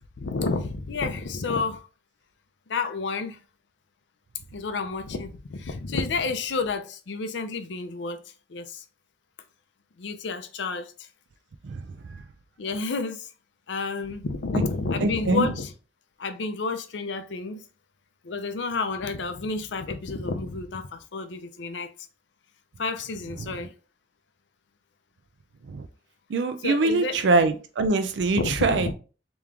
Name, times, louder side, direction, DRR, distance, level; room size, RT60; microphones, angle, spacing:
voice 1, 0.2-1.9 2.7-3.4 4.5-8.2 8.5-8.8 10.0-11.1 12.6-13.3 13.7-15.7 16.2-17.7 18.2-21.9 22.8-23.7 26.6-27.2 28.4-28.9, left 4 dB, 80° left, 0.6 m, -30 dB
voice 2, 15.0-15.5 23.4-23.6 25.7-25.9 26.3-28.9, right 3 dB, 75° right, 0.4 m, -24 dB
3.6 x 3.0 x 3.4 m
head